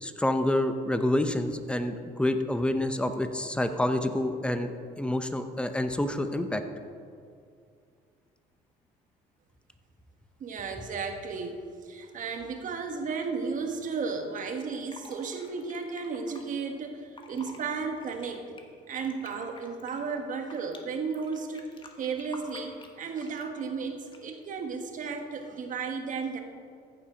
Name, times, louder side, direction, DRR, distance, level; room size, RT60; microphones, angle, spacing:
voice 1, 0.0-6.6, left 1 dB, 5° left, 8 dB, 0.8 m, -28 dB
voice 2, 10.4-18.6 18.9-21.6 22.0-26.4, right 5 dB, 50° right, 5 dB, 1.4 m, -34 dB
Fill (with liquid), 14.4-16.4 17.0-17.6 18.0-20.8 21.1-23.6 24.1-24.5, left 3 dB, 30° left, 1.4 m, -49 dB
14.5 x 7.2 x 5.1 m, 2.3 s
cardioid pair, 110°, 17 cm